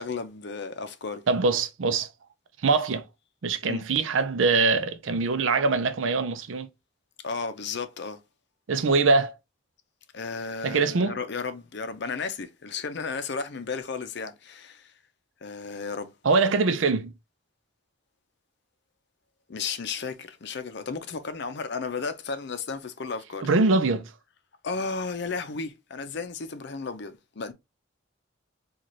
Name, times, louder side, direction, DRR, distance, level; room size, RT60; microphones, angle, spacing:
voice 1, 0.0-1.2 3.6-3.8 7.2-8.2 10.1-14.9 15.4-16.1 19.5-23.5 24.6-27.5, left 4 dB, 60° left, 0.6 m, -34 dB
voice 2, 1.3-2.1 2.6-3.0 3.4-6.7 8.7-9.3 10.6-11.2 16.2-17.1 23.4-24.1, right 4 dB, 80° right, 0.5 m, -23 dB
4.1 x 2.4 x 3.0 m
head